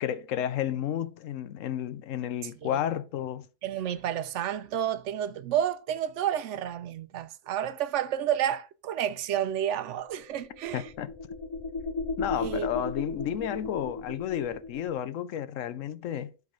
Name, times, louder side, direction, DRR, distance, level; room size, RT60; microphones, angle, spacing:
voice 1, 0.0-3.5 10.7-11.1 12.2-16.3, left 10 dB, 90° left, 1.0 m, -32 dB
voice 2, 3.6-10.9 12.4-12.7, right 10 dB, 75° right, 0.9 m, -30 dB
sound 1, 10.0-15.0, left 3 dB, 35° left, 0.5 m, -36 dB
7.6 x 4.0 x 5.1 m
omnidirectional pair, 1.3 m